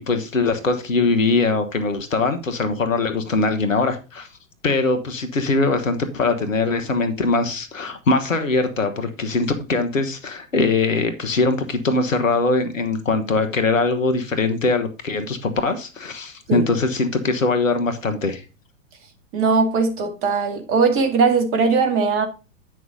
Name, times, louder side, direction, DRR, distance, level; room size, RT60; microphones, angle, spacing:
voice 1, 0.0-4.3 4.6-18.4, left 3 dB, 75° left, 1.5 m, -21 dB
voice 2, 19.3-22.3, right 4 dB, 35° right, 2.1 m, -19 dB
9.6 x 6.1 x 3.8 m
figure-of-eight pair, 95°, 40 cm